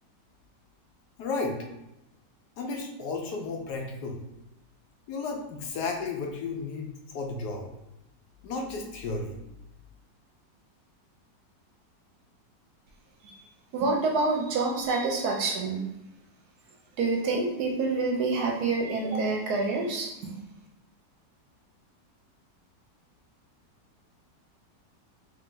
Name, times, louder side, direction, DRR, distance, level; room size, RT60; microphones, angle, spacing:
voice 1, 1.2-1.6 2.6-4.2 5.1-7.7 8.4-9.4, left 3 dB, 70° left, 1 dB, 1.2 m, -33 dB
voice 2, 13.7-15.8 17.0-20.3, right 3 dB, 70° right, 1 dB, 1.1 m, -27 dB
3.4 x 2.9 x 3.8 m, 0.92 s
omnidirectional pair, 1.9 m